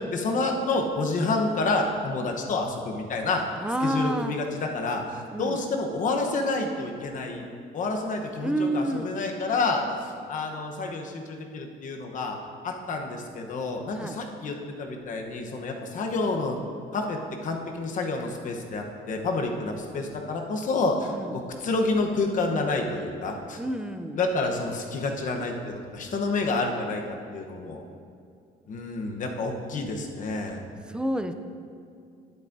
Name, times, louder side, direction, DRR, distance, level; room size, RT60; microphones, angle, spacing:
voice 1, 0.0-3.4 3.8-7.4 7.7-12.4 12.6-16.6 16.9-23.6 24.1-27.0 27.3-27.8 28.7-30.6, left 3 dB, 50° left, 2 dB, 1.0 m, -29 dB
voice 2, 3.6-4.4 5.3-5.6 8.4-9.1 14.0-14.2 21.1-21.4 23.6-24.2 30.9-31.3, right 1 dB, 5° right, 8 dB, 0.4 m, -29 dB
10.5 x 8.7 x 2.7 m, 2.4 s
cardioid pair, 110°, 17 cm